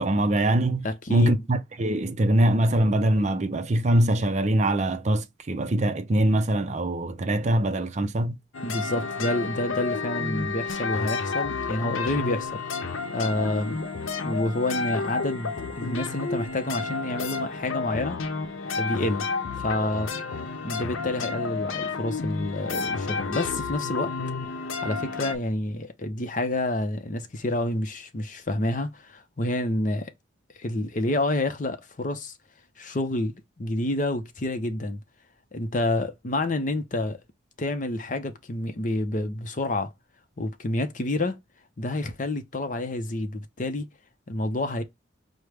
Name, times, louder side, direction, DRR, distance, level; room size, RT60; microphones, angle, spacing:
voice 1, 0.0-8.4, right 1 dB, 35° right, 0.5 m, -23 dB
voice 2, 0.8-1.4 8.6-12.6 13.1-13.8 14.2-18.2 18.6-19.3 19.6-20.1 20.6-24.1 24.8-30.1 30.5-32.3 32.8-35.0 35.5-37.2 37.6-39.9 40.4-41.4 41.8-43.9 44.3-44.8, left 1 dB, 40° left, 0.6 m, -28 dB
sound 1, 8.5-25.3, left 4 dB, 85° left, 0.7 m, -31 dB
6.1 x 2.1 x 3.3 m
head